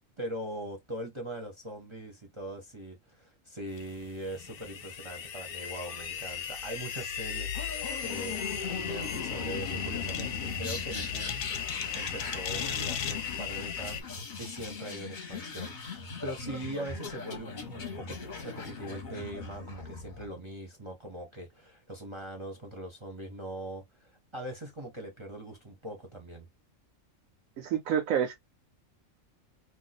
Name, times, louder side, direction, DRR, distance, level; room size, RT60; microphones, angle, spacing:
voice 1, 0.2-7.6 8.0-11.5 11.9-14.0 14.4-26.5, right 1 dB, 30° right, 0.7 m, -41 dB
sound 1, 3.8-14.0, left 8 dB, 65° left, 0.6 m, -36 dB
sound 2, 7.5-20.3, left 4 dB, 40° left, 0.9 m, -39 dB
voice 2, 27.6-28.3, right 9 dB, 85° right, 1.0 m, -28 dB
2.5 x 2.2 x 4.0 m
omnidirectional pair, 1.3 m